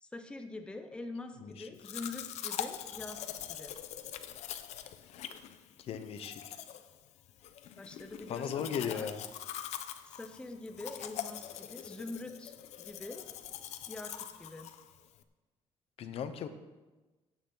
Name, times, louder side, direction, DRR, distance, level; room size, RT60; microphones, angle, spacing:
voice 1, 0.0-3.2 3.5-3.8 7.8-9.1 10.0-13.3 13.9-14.7, left 2 dB, 10° left, 6 dB, 0.7 m, -44 dB
Domestic sounds home sounds, 1.8-15.2, left 10 dB, 90° left, 0.7 m, -43 dB
voice 2, 5.8-6.5 8.3-9.2 16.0-16.5, left 7 dB, 60° left, 10 dB, 0.8 m, -37 dB
16.0 x 9.4 x 3.9 m, 1.2 s
cardioid pair, 180°, 11 cm